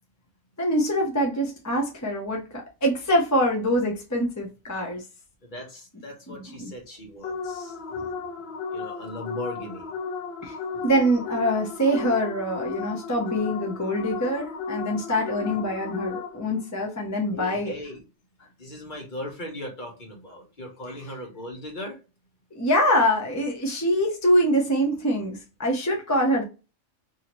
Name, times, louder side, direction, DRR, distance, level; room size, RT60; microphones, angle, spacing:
voice 1, 0.6-5.0 6.3-6.7 10.4-10.6 10.8-17.7 22.5-26.4, equal, 20° left, 0.5 m, -24 dB
voice 2, 5.5-9.9 10.7-11.0 17.3-18.0 18.6-22.0, left 1 dB, 40° left, 1.1 m, -39 dB
sound 1, 7.2-16.6, left 5 dB, 65° left, 0.7 m, -34 dB
2.8 x 2.7 x 2.9 m
omnidirectional pair, 1.3 m